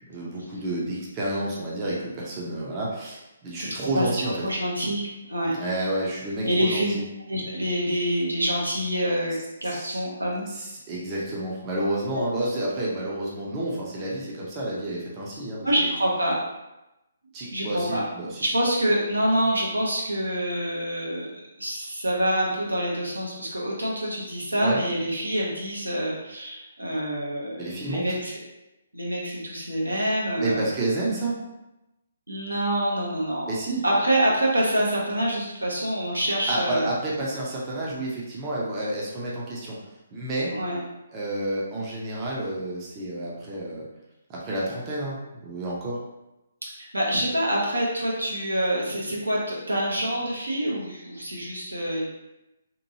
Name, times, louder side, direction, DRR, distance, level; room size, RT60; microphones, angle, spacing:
voice 1, 0.1-4.3 5.5-7.0 9.6-10.0 10.5-15.9 17.3-18.5 24.5-24.8 27.6-28.0 30.4-31.4 33.4-33.8 36.5-39.8 40.1-40.5 41.1-43.8 44.3-46.0, right 1 dB, 25° right, -5 dB, 0.7 m, -30 dB
voice 2, 3.6-4.1 4.4-5.5 6.4-6.9 7.3-10.4 12.1-12.2 15.6-16.4 17.5-18.1 18.4-21.3 21.6-28.4 28.9-30.6 32.3-33.5 33.8-36.9 40.5-40.8 46.7-52.1, equal, 85° right, -4 dB, 0.9 m, -26 dB
2.9 x 2.5 x 2.7 m, 0.95 s
figure-of-eight pair, 135°, 0 cm